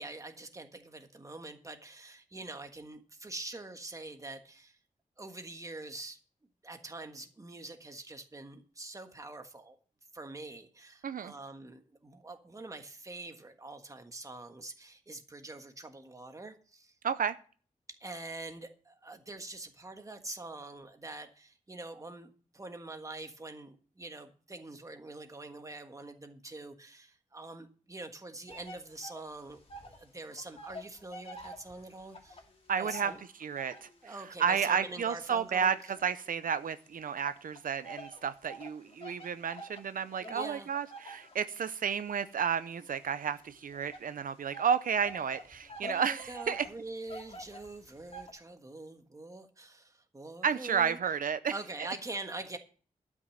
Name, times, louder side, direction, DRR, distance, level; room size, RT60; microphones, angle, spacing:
voice 1, 0.0-4.8 5.2-6.2 6.6-9.8 10.1-16.9 17.9-32.4 32.8-33.2 34.0-35.7 40.2-40.7 45.8-51.0 51.5-52.6, right 2 dB, 25° right, 6 dB, 1.5 m, -45 dB
voice 2, 17.0-17.4 32.7-33.1 33.4-34.1 34.4-46.7 50.4-51.5, right 7 dB, 80° right, 12 dB, 0.6 m, -32 dB
sound 1, 28.5-30.1 30.3-34.0 34.6-36.6 37.3-48.3, equal, 45° left, 2.5 m, -48 dB
12.0 x 6.2 x 7.7 m, 0.41 s
wide cardioid pair, 135°, 14 cm